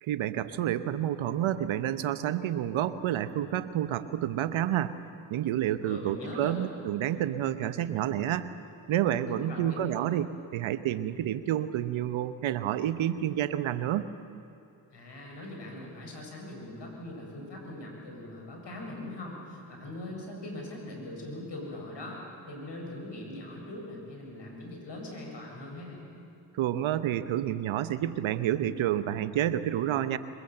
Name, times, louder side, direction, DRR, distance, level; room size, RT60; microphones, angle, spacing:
voice 1, 0.0-5.0 5.3-8.5 8.9-14.1 26.5-30.2, right 11 dB, 80° right, 13 dB, 1.0 m, -29 dB
voice 2, 5.8-6.7 9.3-9.9 14.9-26.0, left 1 dB, 60° left, 0 dB, 7.4 m, -41 dB
22.5 x 21.0 x 7.8 m, 2.6 s
supercardioid pair, 40°, 47 cm